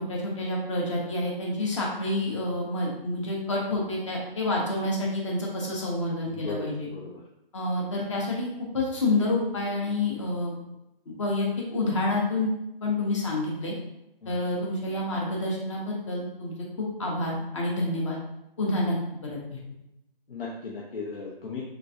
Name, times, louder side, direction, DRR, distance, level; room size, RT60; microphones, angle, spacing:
voice 1, 0.0-6.9 7.5-8.5 8.7-10.5 11.1-12.5 12.8-13.7 14.3-18.2 18.6-19.0 19.2-19.6, left 2 dB, 30° left, -2 dB, 0.7 m, -28 dB
voice 2, 6.3-6.7 6.9-7.1 14.2-14.3 20.3-21.6, left 4 dB, 70° left, -4 dB, 0.7 m, -36 dB
3.4 x 3.0 x 2.6 m, 0.88 s
hypercardioid pair, 165°, 29 cm